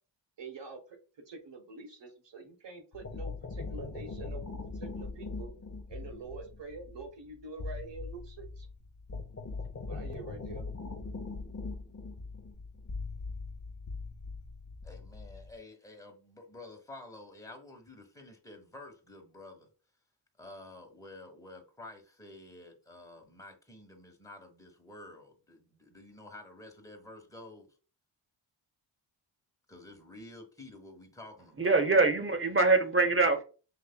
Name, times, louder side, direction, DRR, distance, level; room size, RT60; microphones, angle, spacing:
voice 1, 0.4-1.0 1.3-4.5 4.7-5.5 5.9-8.7 9.9-10.7, right 3 dB, 60° right, 1.2 m, -46 dB
sound 1, 2.9-15.6, left 3 dB, 30° left, 0.7 m, -41 dB
voice 2, 14.8-19.7 20.4-27.7 29.7-31.8, left 2 dB, 5° left, 1.3 m, -50 dB
voice 3, 31.6-33.4, right 3 dB, 25° right, 0.9 m, -24 dB
5.6 x 3.1 x 2.2 m
cardioid pair, 50°, 49 cm